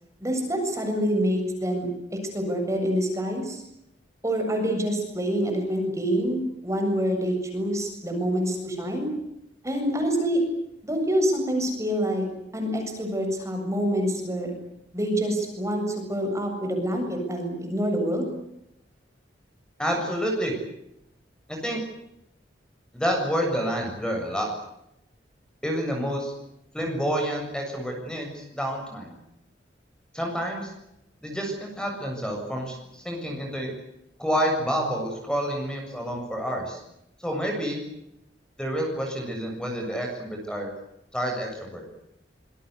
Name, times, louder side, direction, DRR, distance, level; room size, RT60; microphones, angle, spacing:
voice 1, 0.2-3.6 4.2-9.1 9.6-10.4 10.8-12.2 12.5-14.5 14.9-15.8 16.1-18.3, equal, 15° right, 3 dB, 7.6 m, -26 dB
voice 2, 19.8-20.5 21.5-21.8 22.9-24.5 25.6-26.3 26.7-29.2 30.1-30.7 31.2-32.8 33.0-33.7 34.2-36.8 37.2-37.8 38.6-40.7 41.1-41.8, equal, 5° left, 2 dB, 7.4 m, -28 dB
26.0 x 23.0 x 8.3 m, 0.81 s
head